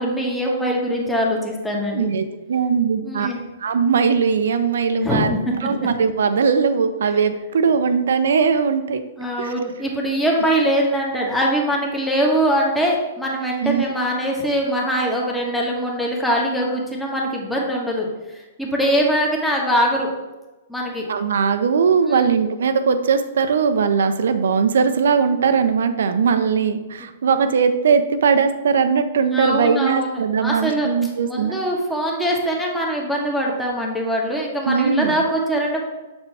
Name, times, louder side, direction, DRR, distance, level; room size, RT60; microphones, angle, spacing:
voice 1, 0.0-2.1 3.0-3.4 4.9-5.4 9.2-20.1 20.7-21.1 22.0-22.3 29.2-30.9 31.2-35.8, equal, 5° left, -2 dB, 1.3 m, -22 dB
voice 2, 1.9-3.3 3.6-5.3 5.6-9.0 9.4-9.5 13.6-13.8 21.1-31.6 34.7-35.2, right 6 dB, 75° right, 10 dB, 0.5 m, -19 dB
6.9 x 4.3 x 3.3 m, 1.1 s
hypercardioid pair, 125°, 0 cm